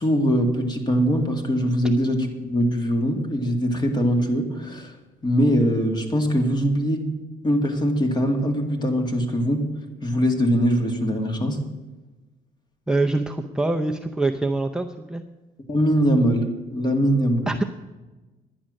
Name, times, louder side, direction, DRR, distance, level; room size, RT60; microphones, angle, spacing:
voice 1, 0.0-5.0 5.2-7.1 7.4-9.7 10.0-11.6 15.7-17.5, equal, 25° left, 5 dB, 2.0 m, -22 dB
voice 2, 12.9-15.2 17.5-17.6, right 2 dB, 5° right, 3 dB, 0.6 m, -24 dB
11.0 x 10.0 x 6.4 m, 1.2 s
cardioid pair, 110°, 17 cm